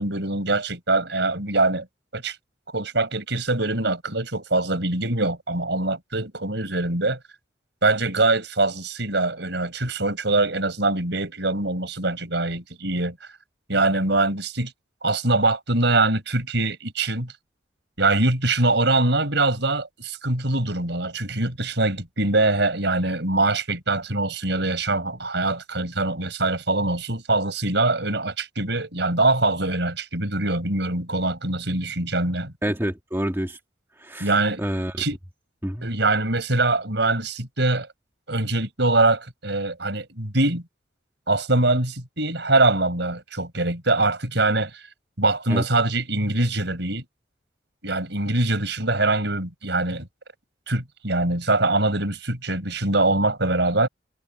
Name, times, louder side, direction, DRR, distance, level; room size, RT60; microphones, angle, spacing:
voice 1, 0.0-1.9 2.1-2.4 2.7-7.2 7.8-13.2 13.7-14.7 15.0-17.3 18.0-32.5 34.2-34.6 35.0-35.2 35.8-37.9 38.3-40.6 41.3-44.9 45.2-47.0 47.8-50.1 50.7-53.9, right 2 dB, 65° right, 6.3 m, -23 dB
voice 2, 32.6-33.6 34.0-34.3 34.6-35.0 35.6-35.9 45.5-45.6, equal, 15° right, 1.9 m, -27 dB
head